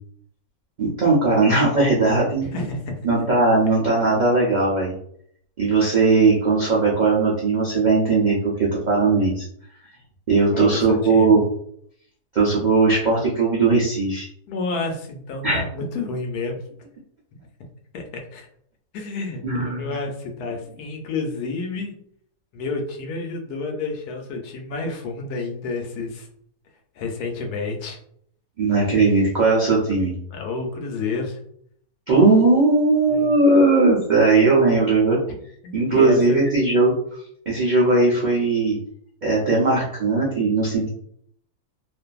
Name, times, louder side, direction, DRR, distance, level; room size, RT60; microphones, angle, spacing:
voice 1, 0.8-2.5 3.0-4.9 5.6-9.5 10.3-11.4 12.3-14.3 15.4-15.6 19.4-19.8 28.6-30.1 32.1-35.2 35.7-36.9 37.5-38.8 39.2-40.9, right 3 dB, 75° right, -5 dB, 0.4 m, -18 dB
voice 2, 2.4-3.1 10.5-11.3 14.5-16.6 17.9-18.5 18.9-21.9 22.5-26.3 27.0-28.0 30.3-31.4 33.1-33.4 35.6-36.4, left 3 dB, 80° left, 3 dB, 1.1 m, -29 dB
2.6 x 2.5 x 2.3 m, 0.67 s
omnidirectional pair, 1.6 m